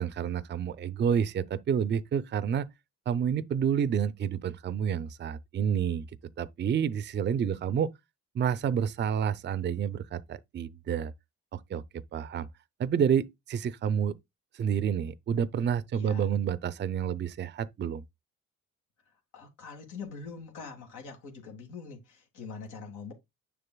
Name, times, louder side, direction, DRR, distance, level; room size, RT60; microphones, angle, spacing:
voice 1, 0.0-2.7 3.1-6.1 6.4-7.9 8.3-11.1 11.5-11.8 12.1-12.5 12.8-14.2 14.5-18.0, right 8 dB, 35° right, 0.5 m, -29 dB
voice 2, 19.3-23.1, left 5 dB, 85° left, 1.8 m, -43 dB
6.7 x 6.5 x 2.2 m
cardioid pair, 90°, 30 cm